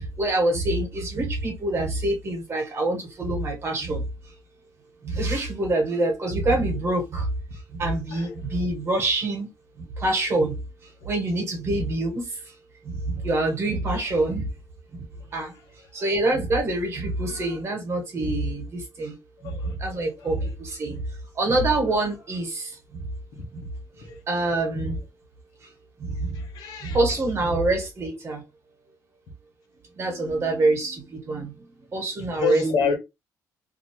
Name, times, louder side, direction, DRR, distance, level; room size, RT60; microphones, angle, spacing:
voice 1, 0.2-4.0 5.0-7.3 7.8-9.5 10.0-10.6 11.0-12.3 12.8-14.5 14.9-15.0 15.3-15.5 15.9-19.1 19.4-21.0 21.3-22.8 23.5-23.6 24.3-25.0 26.0-26.3 26.8-28.4 29.9-31.5 31.9-32.9, right 2 dB, 40° right, 1.4 m, -25 dB
voice 2, 26.3-27.0 32.4-33.0, left 5 dB, 85° left, 1.0 m, -28 dB
2.7 x 2.3 x 3.0 m
cardioid pair, 120°, 7 cm